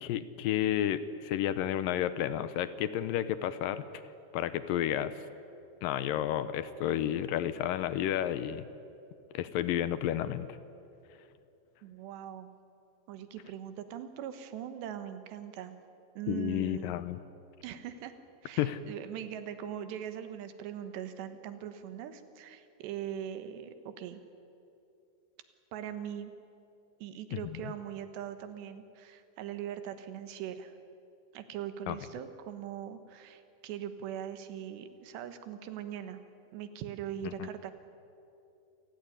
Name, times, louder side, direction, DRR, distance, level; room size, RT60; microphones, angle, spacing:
voice 1, 0.0-3.8 4.3-5.1 5.8-8.7 9.3-10.5 16.3-17.2 18.6-18.8 27.3-27.4 31.9-32.0 37.2-37.5, left 11 dB, 80° left, 13 dB, 2.1 m, -31 dB
voice 2, 11.8-12.5 13.1-15.8 16.2-17.0 17.6-18.2 18.4-24.2 25.7-26.3 27.0-30.7 31.3-36.2 36.5-37.7, right 10 dB, 90° right, 9 dB, 3.5 m, -41 dB
28.0 x 16.5 x 10.0 m, 2.7 s
omnidirectional pair, 4.8 m